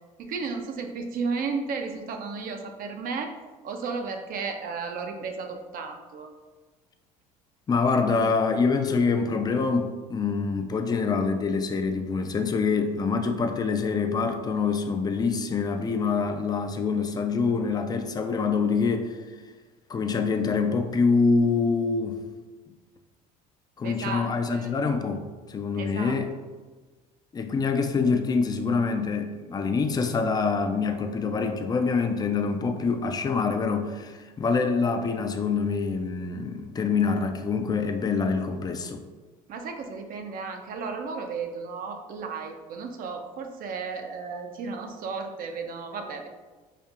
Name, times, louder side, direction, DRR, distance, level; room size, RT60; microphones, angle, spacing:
voice 1, 0.2-3.3 3.6-6.3 23.8-24.7 25.8-26.2 39.5-46.3, right 4 dB, 50° right, 4 dB, 0.5 m, -34 dB
voice 2, 7.7-19.2 19.9-22.2 23.8-26.3 27.3-39.0, left 4 dB, 20° left, 6 dB, 0.4 m, -25 dB
4.3 x 2.5 x 2.4 m, 1.3 s
hypercardioid pair, 75°, 19 cm